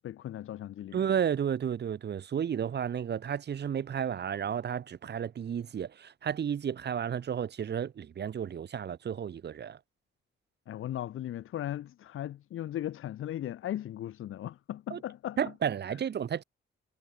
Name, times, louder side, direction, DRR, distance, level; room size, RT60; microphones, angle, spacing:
voice 1, 0.0-1.1 10.7-15.4, left 12 dB, 80° left, 1.9 m, -37 dB
voice 2, 0.9-9.8 14.9-15.0 15.4-16.4, right 8 dB, 55° right, 4.3 m, -32 dB
cardioid pair, 125°, 21 cm